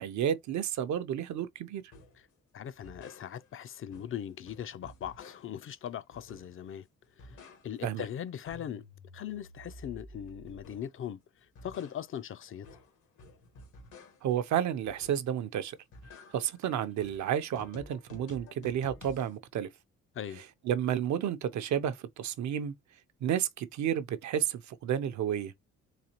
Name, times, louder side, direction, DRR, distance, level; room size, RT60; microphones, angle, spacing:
voice 1, 0.0-1.8 7.8-8.0 14.2-15.8 16.3-19.7 20.7-22.7 23.2-25.5, right 9 dB, 70° right, 0.6 m, -31 dB
sound 1, 1.9-2.2 2.6-3.6 3.9-5.7 6.1-6.7 7.0-8.0 8.3-11.0 11.4-14.4 14.8-15.4 15.7-19.4, left 2 dB, 85° left, 1.4 m, -52 dB
voice 2, 2.5-6.9 7.2-8.8 9.1-12.7 20.1-20.4, left 9 dB, 45° left, 0.4 m, -40 dB
4.0 x 2.9 x 2.8 m
cardioid pair, 90°, 30 cm